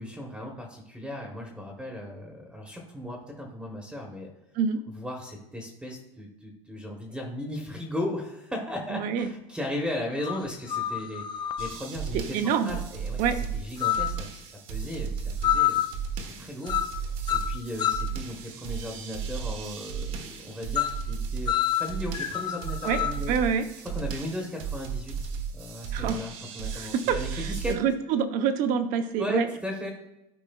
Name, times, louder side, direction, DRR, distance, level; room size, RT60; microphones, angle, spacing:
voice 1, 0.0-4.3 4.9-11.2 11.6-15.8 16.1-23.3 23.9-27.8 29.2-29.9, left 1 dB, 5° right, 0 dB, 1.0 m, -36 dB
voice 2, 8.9-9.3 12.3-12.7 13.2-13.4 22.8-23.0 23.3-23.7 25.9-26.2 26.7-29.5, right 7 dB, 50° right, 8 dB, 0.8 m, -26 dB
sound 1, 9.2-9.3 10.2-11.8 13.8-14.2 15.4-16.0 16.7-17.0 17.3-18.2 20.8-21.0 21.5-23.3, left 11 dB, 25° left, 0.4 m, -28 dB
sound 2, 11.6-27.8, right 6 dB, 80° right, 1.1 m, -35 dB
12.5 x 4.7 x 2.3 m, 0.92 s
supercardioid pair, 125°, 17 cm